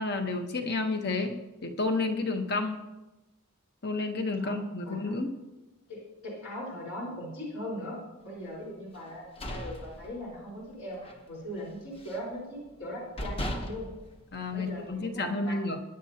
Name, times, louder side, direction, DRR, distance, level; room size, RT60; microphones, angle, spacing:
voice 1, 0.0-1.3 1.6-2.8 3.8-5.3 14.3-15.8, left 3 dB, 45° left, 5 dB, 1.2 m, -30 dB
voice 2, 4.4-5.1 5.9-13.9 14.5-15.6, equal, 75° left, -5 dB, 4.6 m, -40 dB
sound 1, 9.1-10.6 11.0-11.2 11.6-12.3 12.8-12.9 13.2-15.0, equal, 25° left, 1.0 m, -37 dB
21.0 x 10.0 x 2.9 m, 1.0 s
head